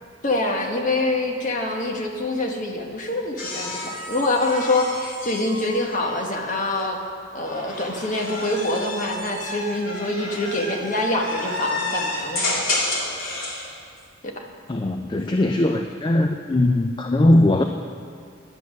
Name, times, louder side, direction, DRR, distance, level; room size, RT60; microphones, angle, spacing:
voice 1, 0.2-7.0 7.3-12.4 14.4-14.5, left 2 dB, 40° left, 1 dB, 1.2 m, -25 dB
sound 1, 3.4-6.6 7.4-13.6 15.1-15.6, left 2 dB, 85° left, 2.5 m, -30 dB
voice 2, 14.7-17.6, left 1 dB, 20° left, 5 dB, 0.3 m, -20 dB
11.0 x 8.6 x 6.3 m, 2.2 s
head